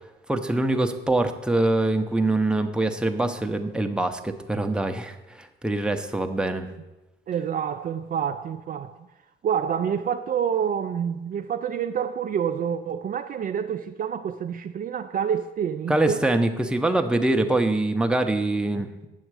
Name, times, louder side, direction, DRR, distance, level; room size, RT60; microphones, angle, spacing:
voice 1, 0.3-6.7 15.9-19.1, right 2 dB, 5° right, 0.7 m, -24 dB
voice 2, 7.3-9.0 9.4-16.2 18.7-18.9, right 8 dB, 45° right, 0.4 m, -28 dB
8.8 x 6.4 x 4.8 m
cardioid pair, 90°, 20 cm